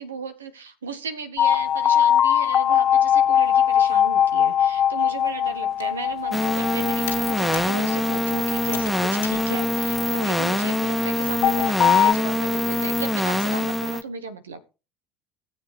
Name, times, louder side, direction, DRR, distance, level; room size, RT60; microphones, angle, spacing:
voice 1, 0.0-14.6, right 4 dB, 90° right, 10 dB, 1.4 m, -35 dB
sound 1, 1.4-10.4 11.4-12.1, left 9 dB, 45° left, 0.4 m, -21 dB
Computer keyboard, 5.6-10.8, left 10 dB, 85° left, 1.8 m, -43 dB
sound 2, 6.3-14.0, left 1 dB, ahead, 1.7 m, -24 dB
17.5 x 7.3 x 3.3 m, 0.31 s
hypercardioid pair, 70°, 0 cm